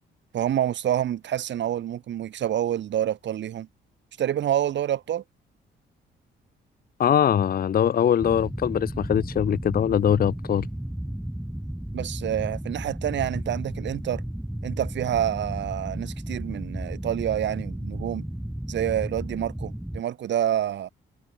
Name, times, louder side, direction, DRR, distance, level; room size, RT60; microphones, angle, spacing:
voice 1, 0.3-3.7 4.2-5.2 11.9-14.2 14.6-18.2 18.7-20.9, right 11 dB, 65° right, 1.8 m, -27 dB
voice 2, 7.0-10.7, left 9 dB, 50° left, 0.9 m, -22 dB
sound 1, 8.2-20.0, right 1 dB, 5° right, 1.6 m, -34 dB
cardioid pair, 90°, 20 cm